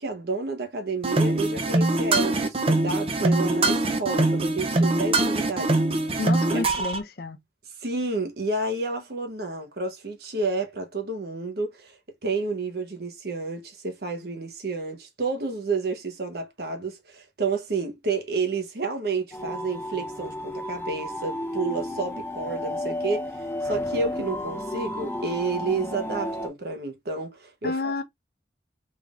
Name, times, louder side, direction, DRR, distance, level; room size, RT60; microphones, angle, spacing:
voice 1, 0.0-5.8 6.0-6.2 6.5-6.6 7.8-12.0 12.2-23.3 23.6-27.9, right 3 dB, 55° right, 0.9 m, -30 dB
sound 1, 1.0-7.0, right 2 dB, 30° right, 0.5 m, -23 dB
voice 2, 6.2-7.4 27.6-28.0, left 3 dB, 55° left, 0.6 m, -30 dB
sound 2, 19.3-26.5, left 1 dB, 15° left, 0.6 m, -32 dB
3.6 x 3.3 x 2.4 m
head